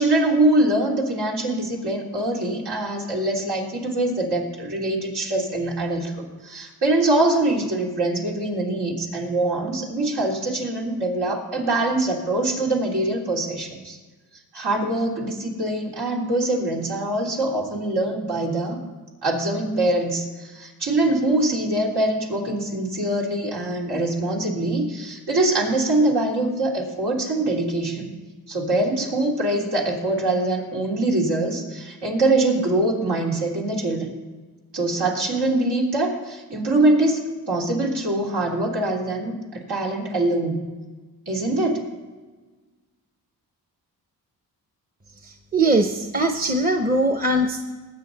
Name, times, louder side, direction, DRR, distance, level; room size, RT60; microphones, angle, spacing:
voice 1, 0.0-14.0 14.5-18.8 19.2-28.1 28.5-34.1 34.7-40.6 41.3-41.9, right 2 dB, 80° right, -2 dB, 3.2 m, -23 dB
voice 2, 45.2-47.7, right 2 dB, 25° right, 5 dB, 0.9 m, -21 dB
20.0 x 8.7 x 4.1 m, 1.3 s
cardioid pair, 75°, 39 cm